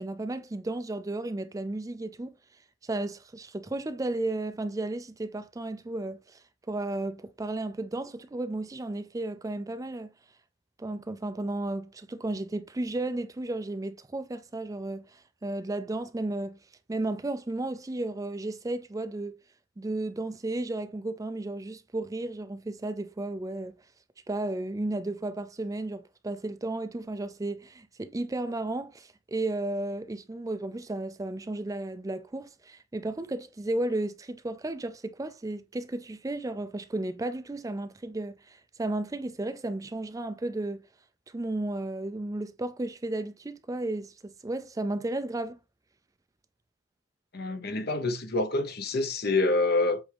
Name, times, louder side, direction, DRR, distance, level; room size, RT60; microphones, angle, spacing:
voice 1, 0.0-2.3 2.8-10.1 10.8-16.6 16.9-19.4 19.8-23.8 24.3-40.8 41.3-45.6, right 2 dB, 15° right, 0.4 m, -33 dB
voice 2, 47.3-50.0, left 2 dB, 50° left, 0.9 m, -27 dB
7.9 x 3.5 x 3.4 m
head